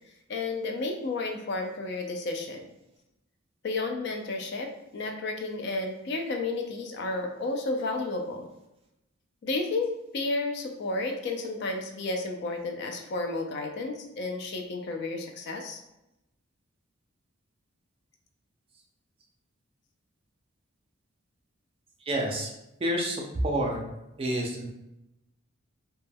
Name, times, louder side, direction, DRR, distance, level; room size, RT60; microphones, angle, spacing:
voice 1, 0.3-2.6 3.6-8.5 9.4-15.8, left 3 dB, 50° left, 4 dB, 0.3 m, -32 dB
voice 2, 22.1-22.5 22.8-23.8 24.2-24.7, right 1 dB, 25° right, 0 dB, 0.4 m, -28 dB
2.1 x 2.1 x 3.3 m, 0.90 s
head